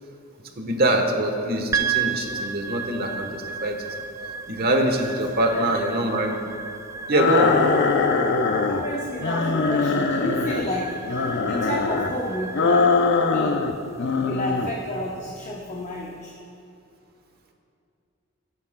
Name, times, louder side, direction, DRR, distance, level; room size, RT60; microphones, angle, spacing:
voice 1, 0.6-3.8 4.5-6.3 7.1-7.6, right 1 dB, 50° right, 3 dB, 1.1 m, -23 dB
sound 1, 1.7-16.1, right 6 dB, 15° right, 0.3 m, -34 dB
voice 2, 5.4-5.8 8.6-12.9 13.3-13.6 14.2-16.3, left 1 dB, 35° left, -2 dB, 0.8 m, -31 dB
sound 2, 7.1-8.9 9.2-10.7 11.1-12.1 12.5-13.7 14.0-14.7, left 4 dB, 55° left, 0.5 m, -22 dB
16.5 x 9.8 x 2.2 m, 2.5 s
head